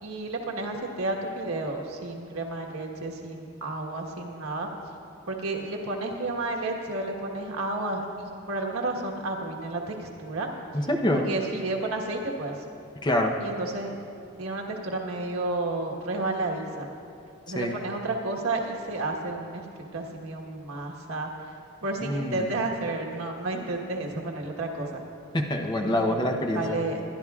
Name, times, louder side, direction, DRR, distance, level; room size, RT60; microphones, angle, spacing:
voice 1, 0.0-4.7 5.3-10.5 11.1-12.6 13.4-13.9 14.4-16.9 17.5-19.6 19.9-21.3 21.8-24.9 25.8-26.2 26.5-27.0, right 2 dB, 85° right, 1 dB, 1.4 m, -31 dB
voice 2, 10.9-11.3 13.0-13.3 17.5-17.7 22.0-22.5 25.3-26.8, left 1 dB, 20° left, 2 dB, 0.8 m, -25 dB
22.0 x 12.0 x 2.4 m, 2.5 s
head